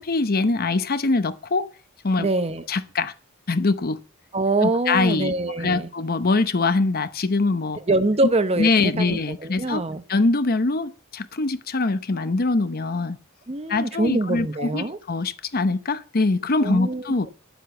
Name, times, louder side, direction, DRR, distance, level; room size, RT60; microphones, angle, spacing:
voice 1, 0.0-1.7 2.0-2.3 2.7-3.1 3.5-4.0 4.6-5.3 5.6-7.8 8.6-9.8 10.1-13.2 13.7-17.3, left 3 dB, 45° left, 0.8 m, -23 dB
voice 2, 2.2-2.7 4.3-5.9 7.8-10.0 13.5-15.0 16.6-17.3, right 2 dB, 30° right, 0.8 m, -24 dB
10.0 x 8.1 x 7.0 m
head